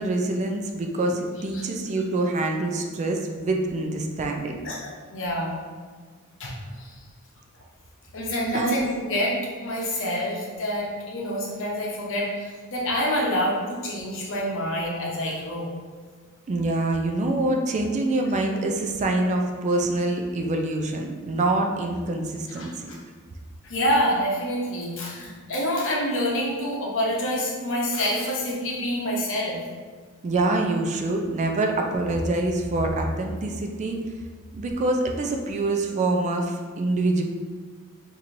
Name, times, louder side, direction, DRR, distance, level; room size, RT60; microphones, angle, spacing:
voice 1, 0.0-4.6 8.5-8.8 16.5-23.0 30.2-34.0 34.5-37.2, right 2 dB, 35° right, 2 dB, 0.3 m, -25 dB
voice 2, 4.6-5.5 6.4-7.0 8.1-15.7 22.5-23.0 23.6-29.6, equal, 60° left, -3 dB, 0.8 m, -27 dB
4.4 x 2.7 x 2.6 m, 1.5 s
head